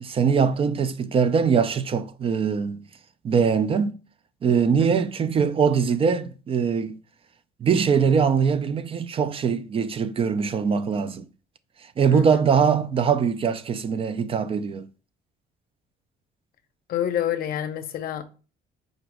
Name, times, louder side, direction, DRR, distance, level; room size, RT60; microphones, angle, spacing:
voice 1, 0.0-2.9 3.2-4.0 4.4-7.0 7.6-11.3 12.0-14.9, right 6 dB, 35° right, 0.3 m, -22 dB
voice 2, 12.1-12.5 16.9-18.2, left 10 dB, 60° left, 0.6 m, -28 dB
5.0 x 2.0 x 4.7 m
cardioid pair, 110°, 17 cm